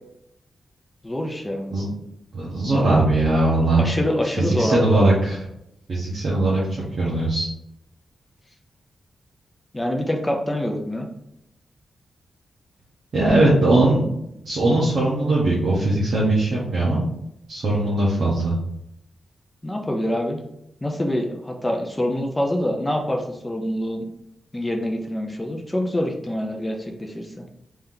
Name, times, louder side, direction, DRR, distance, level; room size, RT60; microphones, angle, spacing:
voice 1, 1.0-1.7 3.8-5.1 9.7-11.1 19.6-20.4 20.8-24.1 24.5-27.4, left 1 dB, 10° left, 2 dB, 0.4 m, -25 dB
voice 2, 2.3-3.8 4.3-5.4 5.9-6.6 7.0-7.5 13.1-14.0 14.4-17.0 17.5-18.6, right 2 dB, 60° right, -7 dB, 1.0 m, -20 dB
3.3 x 2.8 x 3.7 m, 0.79 s
wide cardioid pair, 150°, 0 cm